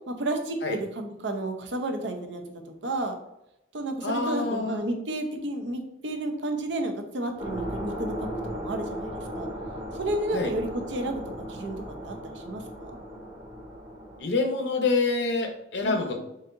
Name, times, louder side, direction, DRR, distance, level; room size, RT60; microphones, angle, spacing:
voice 1, 0.1-3.1 3.7-8.3 8.5-9.5 9.9-12.9 15.8-16.2, right 1 dB, 85° right, 5 dB, 0.7 m, -32 dB
voice 2, 4.0-4.8 10.3-10.5 14.2-16.2, left 3 dB, 70° left, 4 dB, 0.7 m, -26 dB
sound 1, 7.4-14.2, equal, 35° right, 1.0 m, -36 dB
4.0 x 3.8 x 2.6 m, 0.86 s
head